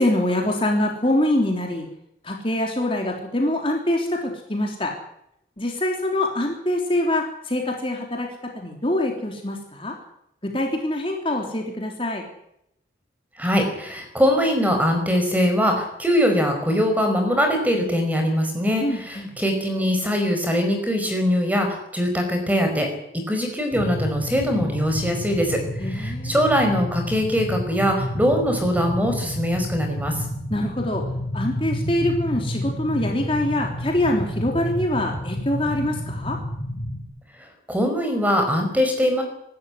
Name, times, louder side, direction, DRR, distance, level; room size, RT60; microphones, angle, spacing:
voice 1, 0.0-1.9 2.2-4.9 5.6-8.3 8.5-9.9 10.4-12.2 18.8-19.3 25.8-26.3 30.5-31.0 31.3-36.4, left 1 dB, 30° left, 1 dB, 3.5 m, -24 dB
voice 2, 13.4-22.9 23.1-25.6 25.8-30.2 37.7-39.2, equal, 10° right, 4 dB, 5.0 m, -22 dB
sound 1, 23.7-37.0, left 1 dB, 60° left, 5.9 m, -30 dB
24.5 x 13.0 x 9.8 m, 0.77 s
head